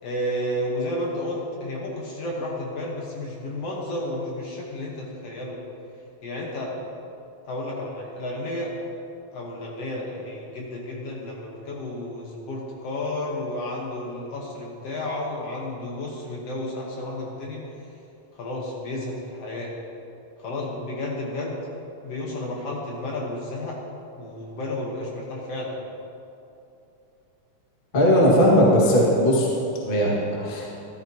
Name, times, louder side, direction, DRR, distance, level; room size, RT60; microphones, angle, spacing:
voice 1, 0.0-5.6 6.2-6.7 7.4-8.7 9.3-17.6 18.4-19.7 20.4-21.6 22.0-23.8 24.2-25.8, left 1 dB, 60° left, -3 dB, 2.1 m, -32 dB
voice 2, 27.9-29.5 29.9-30.7, equal, 25° left, -4 dB, 1.4 m, -18 dB
13.5 x 13.0 x 2.9 m, 2.7 s
omnidirectional pair, 3.4 m